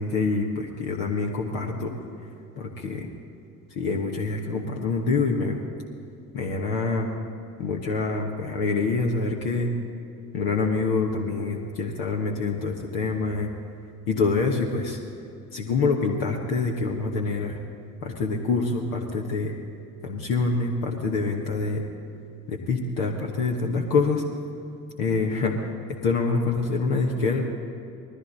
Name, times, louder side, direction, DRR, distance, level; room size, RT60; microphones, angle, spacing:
voice 1, 0.0-1.9 2.6-3.1 3.7-5.6 6.3-7.1 7.6-9.7 10.3-13.5 14.1-15.0 15.5-17.6 18.0-19.5 20.0-21.8 22.5-24.2 25.0-27.4, left 4 dB, 75° left, 0 dB, 1.3 m, -26 dB
20.0 x 15.0 x 4.0 m, 2.6 s
hypercardioid pair, 40°, 42 cm